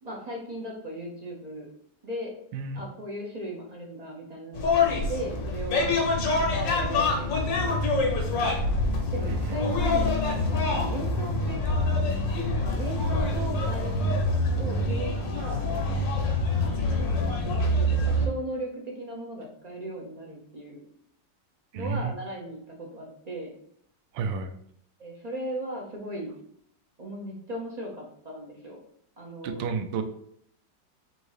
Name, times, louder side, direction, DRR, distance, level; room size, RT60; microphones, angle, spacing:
voice 1, 0.0-1.7 2.0-2.4 2.7-5.9 6.3-8.6 9.1-11.9 12.6-14.1 14.6-15.7 16.6-17.1 17.9-20.9 21.7-23.5 25.0-26.3 27.0-28.8 29.2-29.6, right 1 dB, 55° right, -1 dB, 0.4 m, -37 dB
sound 1, 4.5-18.3, left 2 dB, 85° left, 1.6 m, -26 dB
voice 2, 9.3-9.6 17.6-17.7 21.7-22.1 24.1-24.5 29.4-30.0, right 5 dB, 85° right, 7 dB, 1.3 m, -31 dB
3.8 x 2.7 x 4.8 m, 0.69 s
omnidirectional pair, 1.9 m